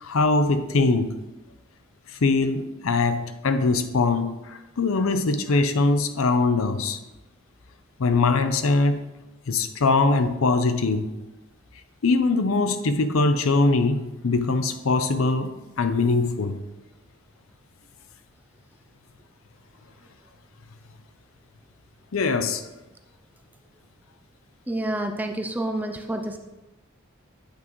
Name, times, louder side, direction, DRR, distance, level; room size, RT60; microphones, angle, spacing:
voice 1, 0.0-1.1 2.2-7.0 8.0-9.0 9.5-11.1 12.0-16.6 22.1-22.6, left 3 dB, 80° left, 10 dB, 0.6 m, -22 dB
voice 2, 24.7-26.4, right 1 dB, 10° right, 6 dB, 0.3 m, -28 dB
8.5 x 5.9 x 3.1 m, 1.1 s
head